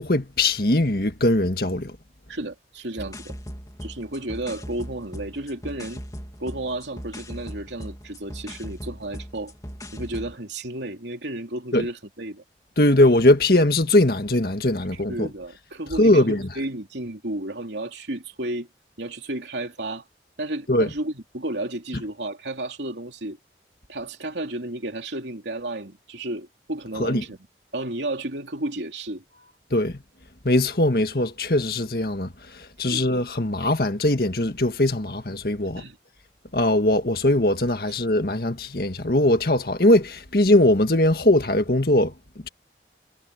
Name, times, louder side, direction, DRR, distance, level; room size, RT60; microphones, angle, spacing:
voice 1, 0.0-2.0 11.7-11.8 12.8-15.3 16.0-16.5 20.7-20.9 27.0-27.2 29.7-30.0 30.4-35.8 36.5-42.1, left 1 dB, 55° left, 1.9 m, -20 dB
voice 2, 2.3-3.4 3.8-6.0 6.4-9.5 9.9-12.4 14.9-18.7 19.0-20.0 20.4-23.4 23.9-27.4 27.7-29.5 32.8-33.1 35.7-36.0, right 1 dB, 90° right, 3.1 m, -32 dB
sound 1, 3.0-10.4, equal, 20° left, 3.1 m, -39 dB
head